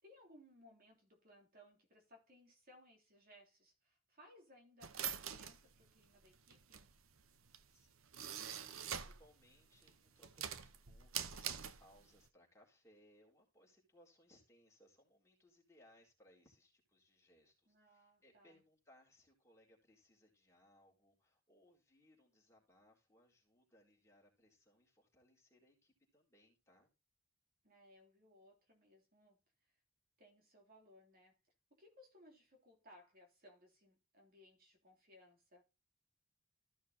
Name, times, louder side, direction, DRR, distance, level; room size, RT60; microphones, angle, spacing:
voice 1, 0.0-6.9 17.7-18.6 27.6-29.7 30.2-31.4 31.7-35.6, left 1 dB, 45° right, 2.9 m, -64 dB
sound 1, 4.8-9.3 9.6-12.2, right 8 dB, 80° right, 0.9 m, -44 dB
voice 2, 7.7-26.9, left 1 dB, 15° left, 4.0 m, -69 dB
14.5 x 6.3 x 2.8 m
head